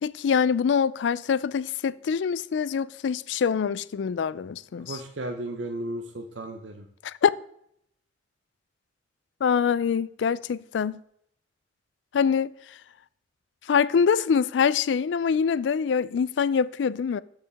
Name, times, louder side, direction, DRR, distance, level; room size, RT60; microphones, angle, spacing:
voice 1, 0.0-5.0 7.0-7.3 9.4-11.0 12.1-12.5 13.7-17.2, left 6 dB, 80° left, 0.4 m, -24 dB
voice 2, 4.9-6.9, right 1 dB, 85° right, 0.9 m, -34 dB
13.5 x 4.9 x 3.4 m
head